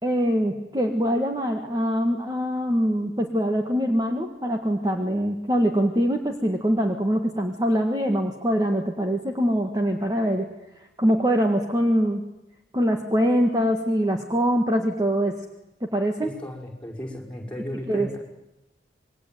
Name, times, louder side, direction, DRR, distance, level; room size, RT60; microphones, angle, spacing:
voice 1, 0.0-10.5 11.0-12.2 12.7-15.4 15.8-16.3 17.9-18.2, equal, 20° right, 3 dB, 1.8 m, -23 dB
voice 2, 16.2-18.2, equal, 5° left, 0 dB, 5.6 m, -35 dB
27.0 x 21.5 x 9.3 m, 0.93 s
head